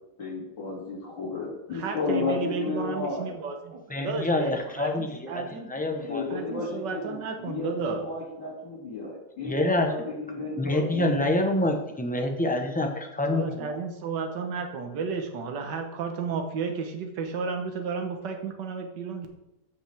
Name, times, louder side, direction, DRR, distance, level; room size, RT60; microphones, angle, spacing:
voice 1, 0.2-3.3 5.9-11.2, left 3 dB, 85° left, -6 dB, 3.4 m, -33 dB
voice 2, 1.7-5.7 6.3-8.1 13.3-19.3, right 5 dB, 75° right, 4 dB, 1.7 m, -33 dB
voice 3, 3.9-6.3 9.4-9.9 10.4-13.7, left 1 dB, 10° left, 3 dB, 0.5 m, -27 dB
14.5 x 5.1 x 3.5 m, 0.87 s
omnidirectional pair, 2.0 m